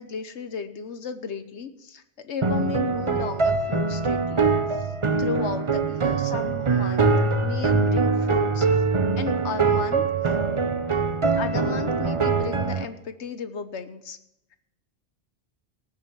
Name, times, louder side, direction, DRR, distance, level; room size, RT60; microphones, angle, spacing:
voice 1, 0.0-4.9 5.2-8.7 9.2-10.0 11.3-14.2, left 6 dB, 75° left, 10 dB, 1.3 m, -34 dB
sound 1, 2.4-12.9, right 4 dB, 30° right, 0.8 m, -23 dB
19.0 x 6.5 x 7.4 m, 0.89 s
omnidirectional pair, 1.2 m